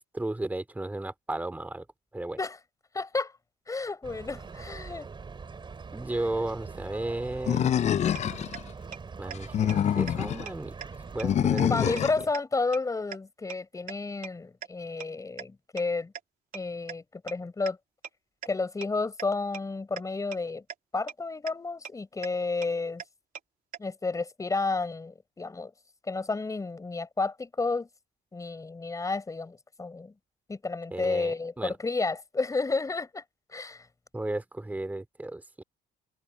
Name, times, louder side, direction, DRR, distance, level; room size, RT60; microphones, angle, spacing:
voice 1, 0.0-1.9 2.1-2.4 5.9-7.8 9.2-10.7 11.1-12.0 30.9-31.7 34.1-35.6, right 2 dB, 10° right, 2.7 m, -34 dB
voice 2, 2.9-3.4 3.7-5.1 11.7-16.1 16.5-17.8 18.5-20.6 20.9-23.0 23.8-25.7 26.1-27.9 28.3-30.1 30.5-33.2 33.5-33.9, left 3 dB, 20° left, 5.3 m, -31 dB
sound 1, 4.0-11.5, right 5 dB, 30° right, 3.6 m, -43 dB
Animal, 7.5-8.6 9.4-10.4 11.2-12.2, left 9 dB, 40° left, 0.5 m, -26 dB
sound 2, 8.1-8.2 8.5-8.6 8.9-9.0 9.3-9.4 9.7-9.8 10.1-10.2 10.5-10.6 10.8-10.9 11.2-11.3 11.6-11.7 12.0-12.1 12.3-12.4 12.7-12.8 13.1-13.2 13.5-13.6 13.9-14.0 14.2-14.3 14.6-14.7 15.0-15.1 15.4-15.5 15.8-15.9 16.1-16.2 16.5-16.6 16.9-17.0 17.3-17.4 17.7-17.8 18.0-18.1 18.4-18.5 18.8-18.9 19.2-19.3 19.5-19.6 20.0-20.1 20.3-20.4 20.7-20.8 21.1-21.2 21.5-21.6 21.8-21.9 22.2-22.3 22.6-22.7 23.0-23.1 23.3-23.4 23.7-23.8, right 8 dB, 55° right, 3.1 m, -38 dB
cardioid pair, 110°, 17 cm